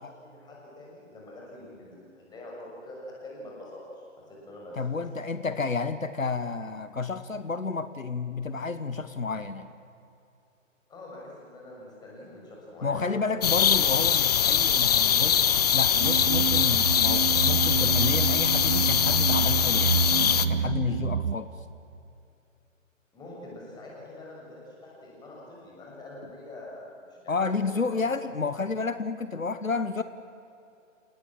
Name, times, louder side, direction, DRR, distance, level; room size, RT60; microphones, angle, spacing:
voice 1, 0.0-4.8 10.9-13.6 23.1-28.0, left 1 dB, 10° left, -3 dB, 6.5 m, -45 dB
voice 2, 4.7-9.7 12.8-15.4 15.7-21.5 27.3-30.0, left 4 dB, 80° left, 12 dB, 1.3 m, -31 dB
sound 1, 13.4-20.5, left 8 dB, 30° left, 0.7 m, -23 dB
sound 2, 16.0-21.4, right 8 dB, 50° right, 1.1 m, -28 dB
29.0 x 18.0 x 7.5 m, 2.7 s
figure-of-eight pair, 135°, 40 cm